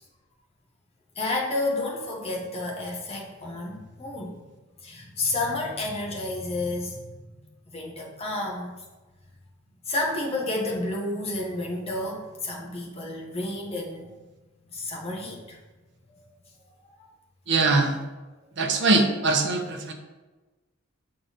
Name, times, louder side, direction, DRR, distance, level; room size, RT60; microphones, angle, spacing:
voice 1, 1.2-4.4 4.8-7.0 7.7-8.7 9.8-14.1 14.7-15.6 16.2-16.3 17.0-17.1, left 2 dB, 30° left, -1 dB, 1.2 m, -30 dB
voice 2, 17.5-18.0 18.6-19.9, right 3 dB, 60° right, 3 dB, 0.8 m, -22 dB
6.7 x 3.8 x 4.1 m, 1.2 s
head